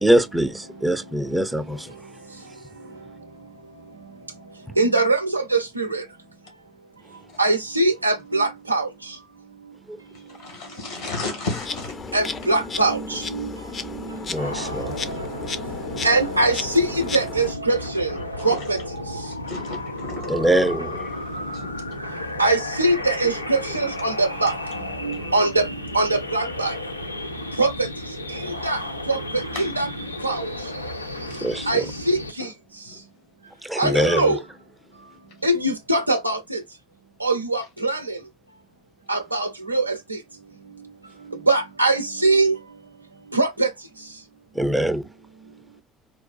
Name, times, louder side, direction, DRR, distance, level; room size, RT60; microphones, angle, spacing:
voice 1, 0.0-2.1 9.9-10.0 14.3-15.2 20.3-21.2 31.4-31.9 33.6-34.4 44.5-45.1, right 1 dB, 10° right, 0.5 m, -23 dB
voice 2, 4.8-6.0 7.4-8.9 12.1-13.5 16.0-18.2 18.4-18.8 22.4-24.5 25.0-25.7 25.9-26.7 27.6-27.7 28.6-28.8 29.1-29.9 30.2-30.5 31.7-32.5 33.8-34.4 35.4-36.6 37.2-38.2 39.1-40.0 41.5-42.6 43.3-43.7, right 2 dB, 90° right, 0.4 m, -22 dB
voice 3, 10.3-12.0 13.7-13.8 15.1-15.4 18.4-18.6 19.2-20.3 21.2-21.8 25.1-25.4 29.4-29.7 32.9-33.0 33.7-33.8, left 3 dB, 75° left, 1.4 m, -34 dB
Insect, 11.5-17.5, left 5 dB, 35° left, 0.6 m, -34 dB
sound 1, 14.3-32.3, left 1 dB, 90° left, 0.4 m, -33 dB
4.0 x 2.3 x 2.2 m
figure-of-eight pair, 55°, 0 cm